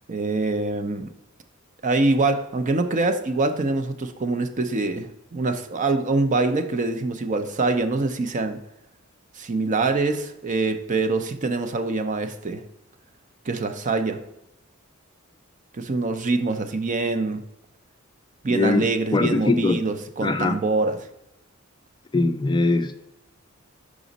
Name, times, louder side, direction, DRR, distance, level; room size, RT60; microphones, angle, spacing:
voice 1, 0.1-1.1 1.8-8.6 9.3-12.6 13.4-14.2 15.7-17.4 18.4-21.0, right 3 dB, 35° right, 8 dB, 0.5 m, -24 dB
voice 2, 18.5-19.8 20.2-20.6 22.1-23.1, left 3 dB, 20° left, 7 dB, 0.4 m, -22 dB
6.1 x 5.0 x 4.0 m, 0.86 s
head